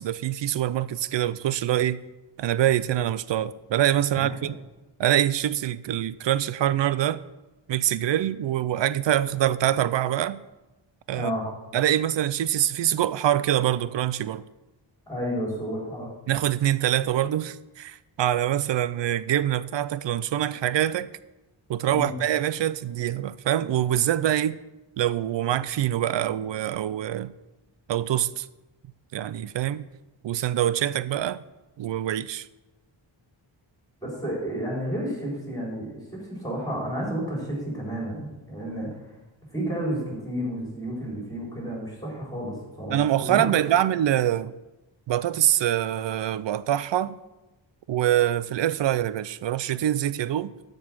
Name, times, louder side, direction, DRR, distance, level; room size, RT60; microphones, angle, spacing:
voice 1, 0.0-2.0 2.4-4.5 5.0-7.2 7.7-10.4 11.1-11.3 11.7-14.4 16.3-21.1 21.7-24.6 25.0-27.3 27.9-28.5 29.1-29.8 30.2-31.4 31.8-32.5 42.9-44.5 45.1-47.2 47.9-50.5, right 12 dB, 65° right, 0.5 m, -24 dB
voice 2, 11.2-11.5 15.1-16.1 21.9-22.2 34.0-38.9 39.5-43.6, equal, 10° left, 4.1 m, -31 dB
13.0 x 5.4 x 6.2 m
wide cardioid pair, 145°, 47 cm